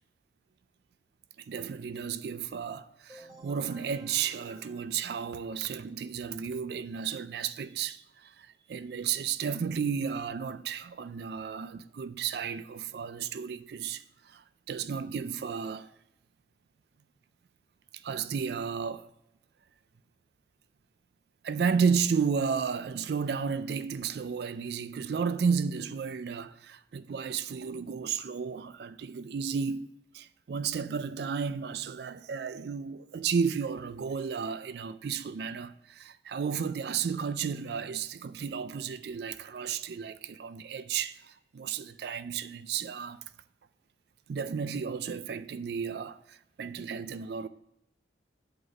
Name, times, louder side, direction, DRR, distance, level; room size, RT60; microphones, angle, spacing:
voice 1, 1.5-15.9 17.9-19.1 21.4-43.2 44.3-47.5, right 6 dB, 60° right, 0.3 m, -33 dB
sound 1, 3.1-5.8, right 1 dB, 20° right, 1.5 m, -54 dB
7.9 x 4.0 x 6.1 m
head